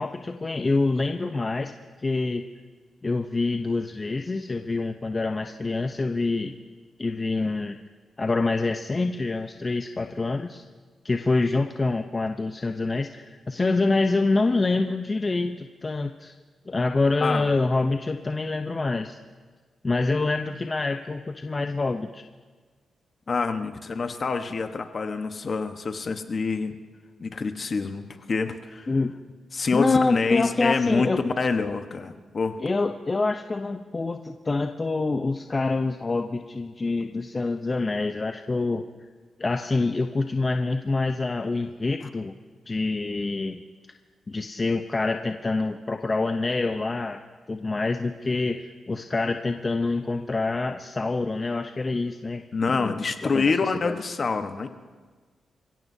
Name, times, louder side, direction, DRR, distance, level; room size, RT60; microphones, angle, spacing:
voice 1, 0.0-1.7 2.0-2.4 3.0-6.5 7.0-7.8 8.2-10.6 11.0-16.3 16.7-19.2 19.8-22.2 28.9-29.2 29.7-31.2 32.6-38.9 39.4-42.3 42.7-43.6 44.3-47.2 47.5-53.0 53.2-53.5 53.8-53.9, left 3 dB, 30° left, 5 dB, 0.7 m, -26 dB
voice 2, 17.2-17.5 23.3-26.8 27.2-28.9 29.5-32.6 52.5-54.7, left 4 dB, 45° left, 7 dB, 1.2 m, -26 dB
28.5 x 16.5 x 2.8 m, 1.4 s
cardioid pair, 85°, 0 cm